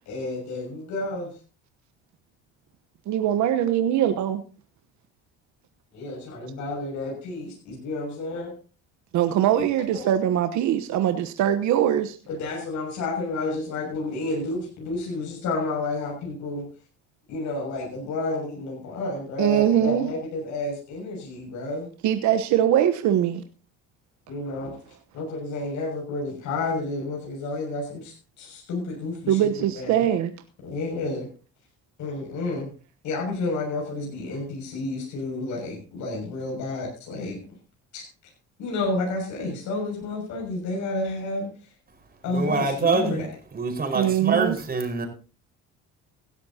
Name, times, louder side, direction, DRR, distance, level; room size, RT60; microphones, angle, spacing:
voice 1, 0.1-1.3 5.9-8.5 9.9-10.0 12.3-16.7 17.3-21.9 24.3-24.8 25.1-29.4 29.7-30.0 30.6-31.3 32.0-32.7 33.0-37.4 37.9-38.0 38.6-41.7 42.2-43.3, left 2 dB, 70° left, -1 dB, 6.8 m, -30 dB
voice 2, 3.1-4.4 9.1-12.2 19.4-20.1 22.0-23.4 29.3-30.3 43.9-44.6, right 10 dB, 70° right, 8 dB, 1.1 m, -22 dB
voice 3, 42.3-43.3 43.5-45.1, right 4 dB, 30° right, 5 dB, 5.1 m, -25 dB
16.5 x 13.0 x 2.9 m, 0.36 s
supercardioid pair, 85°, 30 cm